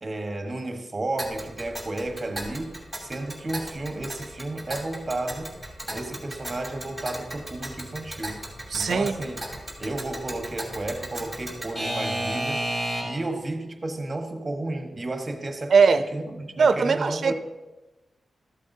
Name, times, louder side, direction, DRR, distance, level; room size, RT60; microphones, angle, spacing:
voice 1, 0.0-5.5 5.9-8.4 8.7-9.4 9.8-12.7 13.0-17.3, right 2 dB, 30° right, 4 dB, 1.3 m, -32 dB
Alarm / Clock, 1.2-13.3, right 1 dB, 10° left, 2.6 m, -34 dB
voice 2, 8.7-9.2 15.7-16.0 16.6-17.3, right 5 dB, 65° right, 10 dB, 0.4 m, -20 dB
14.0 x 8.2 x 2.7 m, 1.1 s
wide cardioid pair, 115°, 0 cm